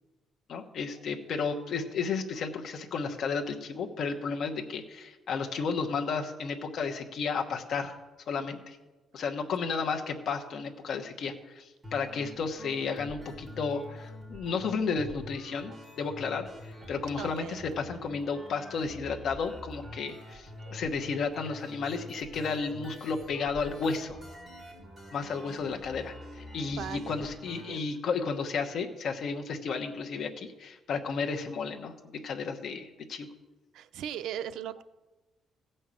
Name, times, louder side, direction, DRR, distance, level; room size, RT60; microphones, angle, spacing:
voice 1, 0.5-8.0 8.3-8.8 9.1-16.5 16.9-24.2 25.1-31.9 32.2-33.3, left 5 dB, 50° left, 3 dB, 1.1 m, -33 dB
sound 1, 11.8-27.8, equal, 10° right, 4.8 m, -46 dB
voice 2, 17.2-17.8 20.6-20.8 26.7-27.3 27.7-27.9 33.7-34.8, right 10 dB, 75° right, 12 dB, 0.5 m, -39 dB
15.5 x 5.5 x 7.6 m, 1.1 s
cardioid pair, 170°, 0 cm